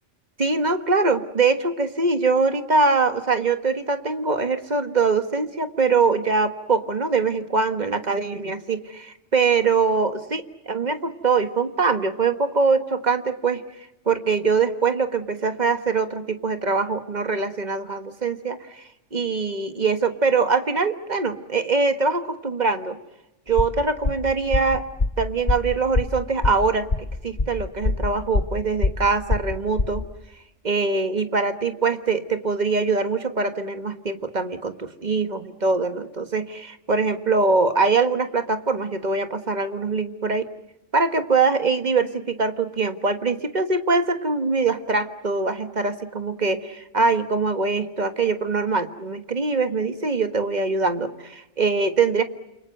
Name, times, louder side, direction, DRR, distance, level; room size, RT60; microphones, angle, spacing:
voice 1, 0.4-13.6 14.1-18.6 19.1-23.0 23.5-24.8 25.2-26.9 27.2-30.0 30.6-40.5 40.9-52.2, right 4 dB, 40° right, 8 dB, 1.6 m, -23 dB
sound 1, 23.5-30.2, left 3 dB, 30° left, 1.1 m, -24 dB
28.5 x 23.5 x 7.8 m, 0.93 s
omnidirectional pair, 1.2 m